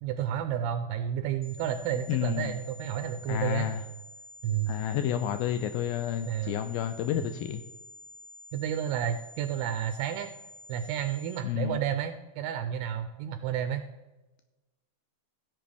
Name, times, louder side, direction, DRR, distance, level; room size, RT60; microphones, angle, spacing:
voice 1, 0.0-3.7 4.4-4.7 6.3-6.6 8.5-10.3 10.7-13.9, right 10 dB, 85° right, 8 dB, 2.4 m, -31 dB
sound 1, 1.4-11.4, left 1 dB, 60° left, 1.1 m, -49 dB
voice 2, 2.1-2.6 3.3-3.8 4.7-7.6 11.4-11.8, left 10 dB, 90° left, 9 dB, 2.1 m, -30 dB
16.5 x 7.7 x 3.4 m, 1.1 s
omnidirectional pair, 4.8 m